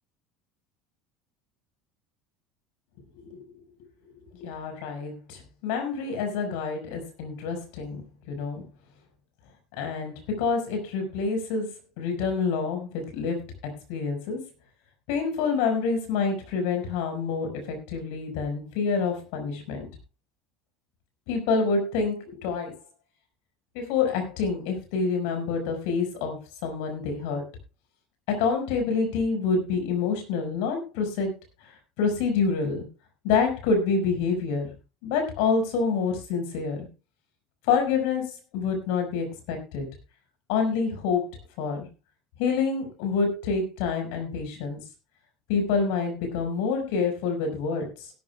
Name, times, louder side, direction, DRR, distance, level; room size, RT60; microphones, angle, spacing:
voice 1, 4.3-8.0 8.3-8.6 9.8-11.7 12.0-13.4 13.9-14.4 15.1-19.9 21.3-22.8 23.7-27.4 28.3-31.3 31.7-32.8 33.2-34.7 35.0-36.9 37.6-39.9 40.5-41.3 41.6-41.9 42.4-44.8 45.5-48.1, left 5 dB, 70° left, 4 dB, 5.5 m, -27 dB
16.5 x 13.5 x 2.3 m, 0.29 s
hypercardioid pair, 80°, 0 cm